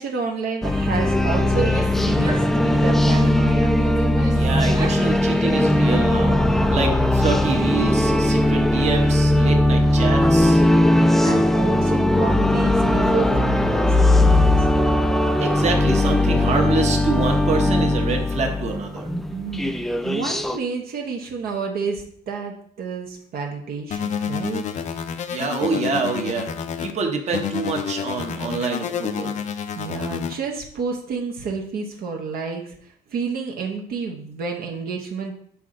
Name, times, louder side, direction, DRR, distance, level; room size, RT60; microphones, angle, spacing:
voice 1, 0.0-3.8 10.7-14.9 19.3-19.8 20.0-24.6 29.7-35.3, right 5 dB, 65° right, 1 dB, 1.0 m, -30 dB
sound 1, 0.6-20.6, left 1 dB, ahead, 0.3 m, -19 dB
Female speech woman speaking / Yell, 1.6-3.2 3.8-5.1 5.4-6.4, right 2 dB, 20° right, 1.2 m, -37 dB
voice 2, 4.3-6.4 6.7-10.6 15.4-19.1 25.3-26.5 26.8-29.3, right 4 dB, 40° right, 3 dB, 1.1 m, -26 dB
sound 2, 23.9-26.9 27.3-30.3, left 7 dB, 45° left, 0.6 m, -29 dB
5.8 x 4.5 x 3.8 m, 0.65 s
cardioid pair, 110°, 17 cm